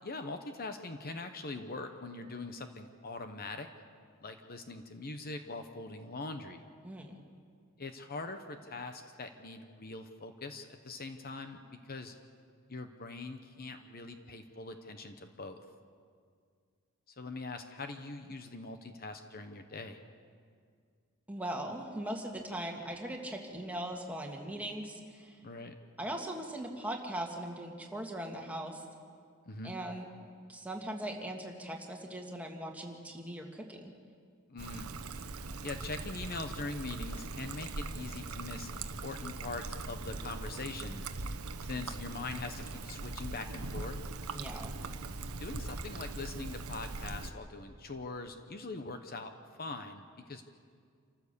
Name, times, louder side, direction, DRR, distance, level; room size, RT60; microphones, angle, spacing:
voice 1, 0.0-3.7 4.2-6.6 7.8-12.1 12.7-15.6 17.1-20.0 25.4-25.7 29.5-29.7 34.5-34.9 35.6-41.0 41.6-44.0 45.4-49.3 49.6-50.4, left 3 dB, 45° left, 7 dB, 1.0 m, -42 dB
voice 2, 6.8-7.2 21.3-25.3 26.0-28.8 29.6-30.1 30.5-33.9 44.3-44.8, right 1 dB, 5° right, 1 dB, 2.0 m, -40 dB
Trickle dribble, 34.6-47.3, right 3 dB, 85° right, 1.0 m, -41 dB
27.5 x 15.0 x 6.8 m, 2.1 s
head